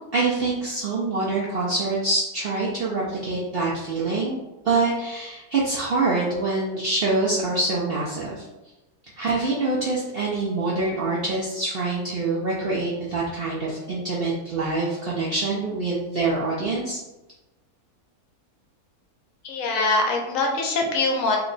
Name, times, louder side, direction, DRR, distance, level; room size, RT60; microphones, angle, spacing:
voice 1, 0.1-4.4 4.6-8.5 9.2-17.0, right 3 dB, 85° right, -5 dB, 0.5 m, -25 dB
voice 2, 19.4-21.4, left 3 dB, 65° left, 1 dB, 0.9 m, -23 dB
2.9 x 2.2 x 3.8 m, 1.0 s
omnidirectional pair, 1.7 m